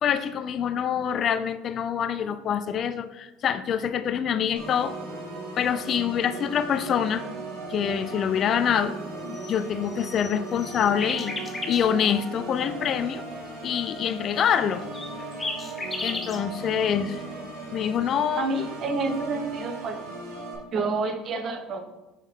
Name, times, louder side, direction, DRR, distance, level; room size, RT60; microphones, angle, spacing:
voice 1, 0.0-4.9 5.6-7.3 7.7-8.9 9.5-11.3 11.7-13.2 13.6-14.8 16.0-17.2 17.7-18.5, left 8 dB, 45° left, 13 dB, 0.4 m, -25 dB
Organ, 4.6-20.6, right 2 dB, 85° right, 1.8 m, -37 dB
sound 1, 9.3-11.8 14.9-16.4, left 2 dB, 20° left, 1.0 m, -35 dB
voice 2, 18.4-20.0 20.7-21.9, right 3 dB, 45° right, 7 dB, 0.9 m, -29 dB
6.1 x 5.4 x 3.7 m, 1.1 s
supercardioid pair, 90°, 0 cm